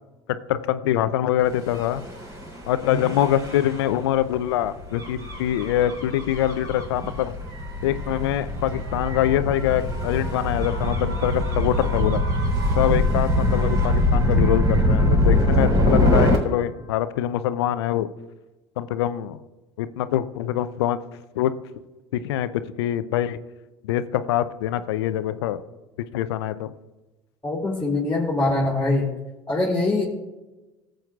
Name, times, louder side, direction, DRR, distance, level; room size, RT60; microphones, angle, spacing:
voice 1, 0.5-2.0 2.7-7.3 7.8-12.2 12.8-18.1 18.8-19.4 19.8-21.0 21.4-21.5 22.1-23.4 23.8-25.6 26.1-26.7, left 12 dB, 75° left, 13 dB, 0.5 m, -24 dB
Gull seagull / Waves surf / Siren, 1.6-16.4, left 1 dB, 30° right, 3.8 m, -23 dB
voice 2, 27.4-29.1 29.5-30.0, left 2 dB, 15° left, -7 dB, 2.6 m, -23 dB
19.0 x 7.7 x 2.4 m, 1.1 s
hypercardioid pair, 65°, 14 cm